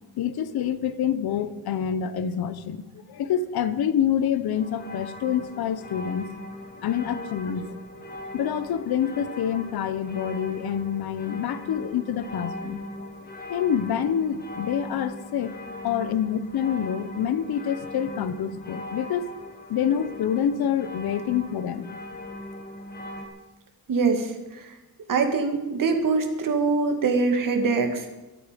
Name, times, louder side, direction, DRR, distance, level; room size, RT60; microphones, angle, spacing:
voice 1, 0.2-2.8 3.1-6.3 6.8-7.7 8.3-12.8 13.5-15.6 15.8-19.3 19.7-21.9, left 8 dB, 75° left, 13 dB, 1.1 m, -27 dB
sound 1, 4.5-23.3, left 1 dB, 25° left, 2.3 m, -39 dB
voice 2, 23.9-24.7 25.1-28.1, right 4 dB, 55° right, 5 dB, 2.4 m, -24 dB
23.0 x 8.8 x 5.3 m, 1.1 s
cardioid pair, 135°, 37 cm